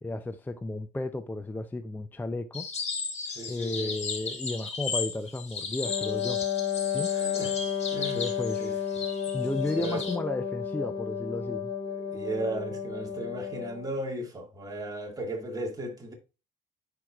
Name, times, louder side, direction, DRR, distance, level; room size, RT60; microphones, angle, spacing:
voice 1, 0.0-2.7 3.5-6.4 6.9-7.1 8.1-9.0 9.3-11.7, left 2 dB, 10° left, 0.5 m, -33 dB
sound 1, 2.5-10.2, left 4 dB, 40° left, 2.4 m, -36 dB
voice 2, 3.4-3.9 7.1-7.5 7.9-8.2 8.6-8.7 9.8-10.0 12.0-16.1, right 2 dB, 20° right, 2.0 m, -35 dB
Wind instrument woodwind instrument, 5.8-13.9, left 8 dB, 75° left, 2.1 m, -32 dB
10.5 x 4.6 x 2.4 m
cardioid pair, 110°, 17 cm